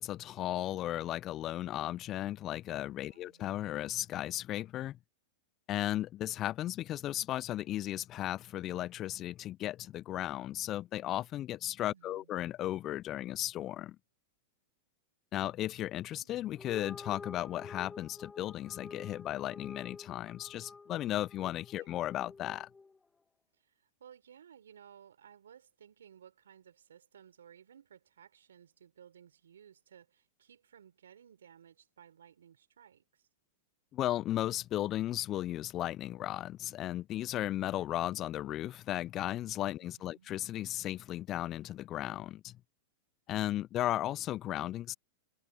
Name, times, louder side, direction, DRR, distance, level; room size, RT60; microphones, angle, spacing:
voice 1, 0.0-5.0 5.7-14.0 15.3-22.7 33.9-42.6 43.3-44.9, left 13 dB, 35° left, 0.3 m, -35 dB
voice 2, 3.1-3.4 11.9-12.3 21.7-21.9 23.6-33.3 39.8-40.3, right 8 dB, 80° right, 4.6 m, -58 dB
sound 1, 16.5-23.1, left 4 dB, 15° left, 1.9 m, -50 dB
hypercardioid pair, 100°, 0 cm